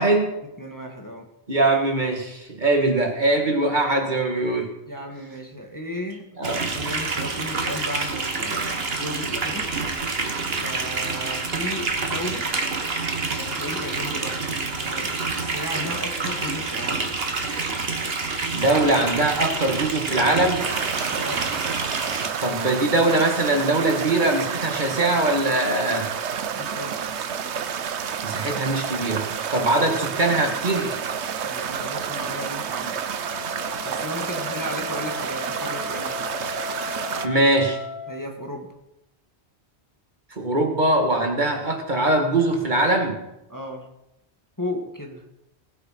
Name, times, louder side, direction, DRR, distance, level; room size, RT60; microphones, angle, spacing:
voice 1, 0.0-0.4 1.5-4.7 6.4-6.6 18.5-20.7 22.4-26.1 28.2-31.0 37.2-37.8 40.3-43.2, right 2 dB, 45° right, 3 dB, 2.1 m, -22 dB
voice 2, 0.6-1.3 4.9-9.7 10.6-12.5 13.0-17.0 21.1-21.5 26.5-27.0 31.4-33.0 33.8-36.2 38.1-38.7 43.5-43.9 44.6-45.2, left 1 dB, 15° left, 1 dB, 1.8 m, -35 dB
sound 1, 6.4-22.3, right 4 dB, 65° right, 1.6 m, -27 dB
sound 2, 20.6-37.3, right 7 dB, 80° right, 1.1 m, -30 dB
Wind instrument woodwind instrument, 33.2-38.2, left 4 dB, 35° left, 3.1 m, -36 dB
18.5 x 8.3 x 5.8 m, 0.89 s
omnidirectional pair, 1.1 m